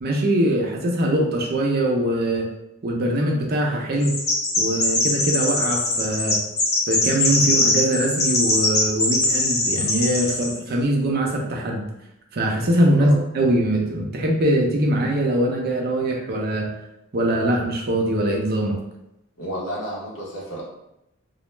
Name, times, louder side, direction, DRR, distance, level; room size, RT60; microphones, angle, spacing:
voice 1, 0.0-2.5 2.8-4.1 4.6-6.4 6.9-11.9 12.3-16.7 17.1-18.8, right 1 dB, 50° right, 0 dB, 0.5 m, -22 dB
Chirp tweet, 4.0-10.5, left 2 dB, 30° left, 0.5 m, -22 dB
voice 2, 12.9-13.2 19.4-20.6, right 1 dB, 80° left, -6 dB, 0.8 m, -31 dB
2.3 x 2.1 x 3.1 m, 0.87 s
head